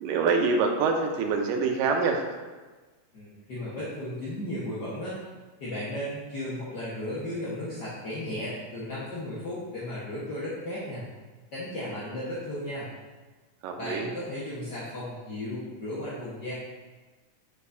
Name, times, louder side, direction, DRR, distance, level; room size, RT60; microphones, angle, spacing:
voice 1, 0.0-2.2 13.6-14.1, right 4 dB, 85° right, 2 dB, 2.4 m, -25 dB
voice 2, 3.1-5.2 5.6-11.0 11.5-12.9 13.8-16.5, left 1 dB, 50° left, -9 dB, 1.2 m, -35 dB
8.0 x 6.6 x 2.7 m, 1.3 s
omnidirectional pair, 3.9 m